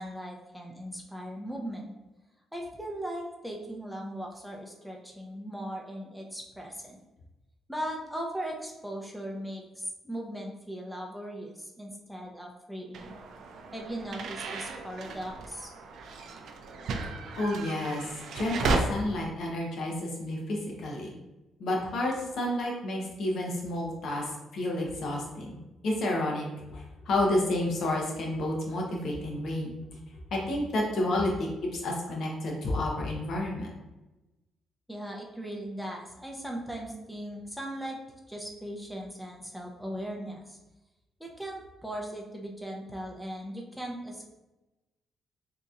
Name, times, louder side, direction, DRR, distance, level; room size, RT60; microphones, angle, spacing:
voice 1, 0.0-1.9 2.5-7.0 7.7-13.2 13.7-15.7 34.9-38.0 38.3-40.6 41.2-44.2, right 1 dB, ahead, 0 dB, 0.6 m, -38 dB
sound 1, 12.9-18.8, right 4 dB, 70° right, 0.4 m, -35 dB
voice 2, 17.4-18.0 18.3-21.1 21.6-24.2 24.5-25.6 25.8-29.8 30.3-33.7, left 1 dB, 65° left, -1 dB, 0.9 m, -30 dB
3.8 x 2.9 x 2.5 m, 1.0 s
cardioid pair, 90°, 0 cm